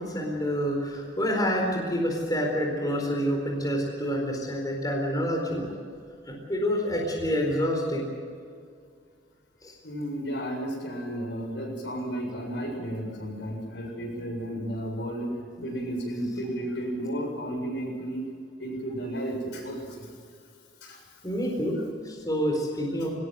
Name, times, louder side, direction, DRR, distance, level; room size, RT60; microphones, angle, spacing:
voice 1, 0.0-5.6 6.3-8.1 9.6-9.7 21.2-21.8 22.0-23.1, equal, 20° left, -1 dB, 4.4 m, -27 dB
voice 2, 9.8-18.2 18.6-20.1 20.8-21.0, right 1 dB, 70° left, 1 dB, 7.6 m, -33 dB
21.5 x 20.0 x 7.8 m, 2.2 s
head